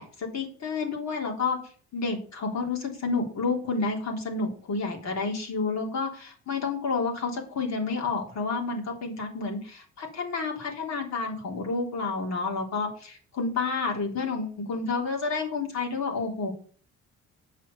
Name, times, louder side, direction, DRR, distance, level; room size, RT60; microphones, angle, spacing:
voice 1, 0.0-1.6 1.9-16.5, left 4 dB, 65° left, 0 dB, 3.7 m, -30 dB
8.3 x 6.1 x 6.8 m, 0.43 s
cardioid pair, 90°, 30 cm